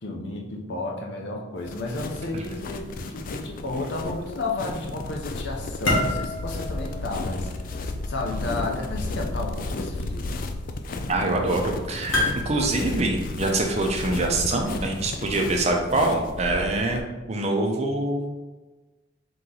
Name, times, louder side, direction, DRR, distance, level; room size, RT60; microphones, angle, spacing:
voice 1, 0.0-7.5 8.1-10.3, left 2 dB, 65° left, 0 dB, 0.7 m, -32 dB
sound 1, 1.5-14.7, left 1 dB, 85° left, 1.3 m, -35 dB
sound 2, 1.6-17.0, left 2 dB, 45° left, 0.3 m, -33 dB
voice 2, 11.1-18.4, right 2 dB, 35° right, 2 dB, 0.6 m, -25 dB
3.8 x 3.0 x 3.9 m, 1.2 s
head